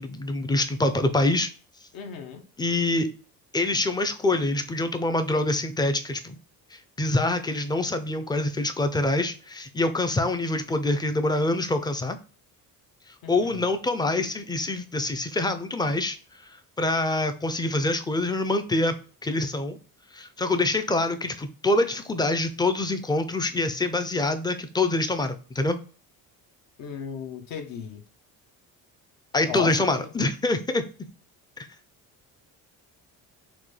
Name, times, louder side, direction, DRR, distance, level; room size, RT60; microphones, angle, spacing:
voice 1, 0.0-1.5 2.6-3.1 3.5-6.4 7.0-12.2 13.3-16.2 16.8-18.9 19.2-19.8 20.1-25.8 29.3-30.8, left 2 dB, 10° left, 0.4 m, -25 dB
voice 2, 1.9-2.4 13.2-13.7 26.8-28.0 29.5-30.1, left 7 dB, 70° left, 0.9 m, -35 dB
5.9 x 2.3 x 3.2 m
cardioid pair, 135°, 36 cm